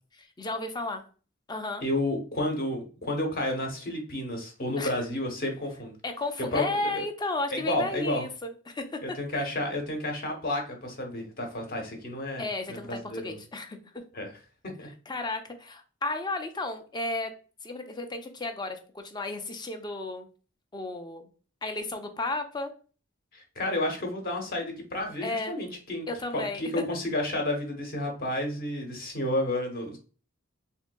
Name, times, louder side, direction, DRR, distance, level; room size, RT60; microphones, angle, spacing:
voice 1, 0.2-1.0 1.5-1.8 4.8-4.9 6.0-9.2 12.4-14.0 15.1-17.3 17.6-20.3 20.7-21.3 21.6-22.7 25.2-25.6 26.1-26.7, left 2 dB, 20° left, 6 dB, 0.4 m, -33 dB
voice 2, 1.8-6.0 6.5-7.1 7.5-8.2 9.0-13.4 14.1-14.3 14.8-14.9 23.3-26.1 26.3-30.0, left 1 dB, 45° left, 3 dB, 0.9 m, -31 dB
3.5 x 2.7 x 2.2 m, 0.37 s
head